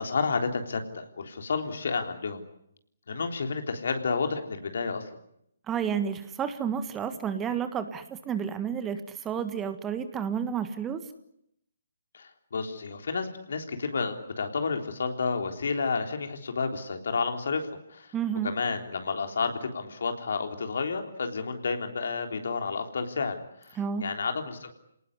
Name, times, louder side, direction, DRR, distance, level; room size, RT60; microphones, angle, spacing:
voice 1, 0.0-2.4 3.1-5.0 12.1-18.1 18.4-23.4 23.6-24.7, left 4 dB, 65° left, 5 dB, 3.6 m, -31 dB
voice 2, 5.7-11.0 18.1-18.5 23.8-24.1, right 7 dB, 15° right, 10 dB, 1.6 m, -31 dB
28.0 x 19.0 x 9.7 m, 0.77 s
figure-of-eight pair, 140°, 0 cm